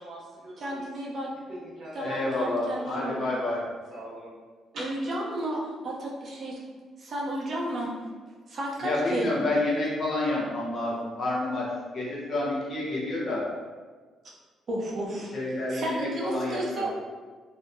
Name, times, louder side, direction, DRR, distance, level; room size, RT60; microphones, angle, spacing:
voice 1, 0.0-0.9 1.5-2.4 2.7-3.4 3.9-4.4 4.7-4.9, right 1 dB, 70° right, -6 dB, 1.0 m, -42 dB
voice 2, 0.6-1.3 1.9-3.2 4.8-6.6 7.0-7.9 8.5-9.3 14.7-15.3 15.7-16.9, right 1 dB, 50° right, -3 dB, 0.6 m, -32 dB
voice 3, 2.0-3.6 8.8-11.7 11.9-13.4 15.3-16.8, left 2 dB, 55° left, -5 dB, 0.8 m, -29 dB
2.6 x 2.1 x 2.5 m, 1.4 s
cardioid pair, 90°, 0 cm